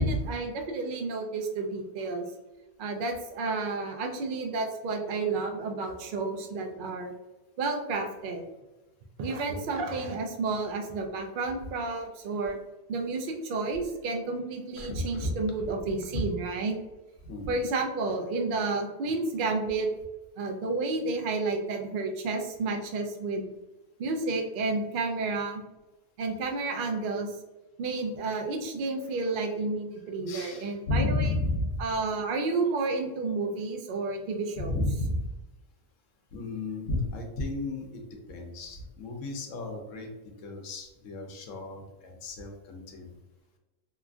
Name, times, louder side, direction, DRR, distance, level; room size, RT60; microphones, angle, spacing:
voice 1, 0.0-2.2 2.8-7.1 7.6-8.4 9.2-12.6 12.9-16.8 17.5-19.9 20.4-23.5 24.0-25.7 26.2-27.3 27.8-31.3 31.8-34.8, right 3 dB, 65° right, 3 dB, 0.5 m, -31 dB
voice 2, 14.8-15.3 17.2-17.6 29.0-29.1 30.3-31.8 34.6-35.3 36.3-43.1, left 2 dB, 80° left, 3 dB, 1.0 m, -32 dB
3.0 x 2.4 x 2.3 m, 1.1 s
omnidirectional pair, 1.3 m